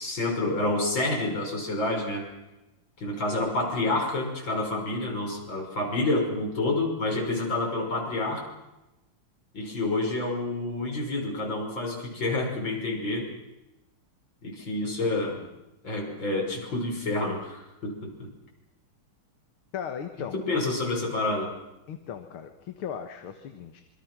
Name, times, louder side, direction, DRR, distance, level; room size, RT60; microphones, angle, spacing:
voice 1, 0.0-2.3 3.0-8.4 9.5-13.3 14.4-15.4 15.8-18.3 20.3-21.5, left 2 dB, 60° left, 0 dB, 6.6 m, -28 dB
voice 2, 19.7-20.4 21.9-23.8, left 8 dB, 75° left, 7 dB, 2.3 m, -37 dB
27.0 x 24.0 x 6.2 m, 0.99 s
omnidirectional pair, 2.4 m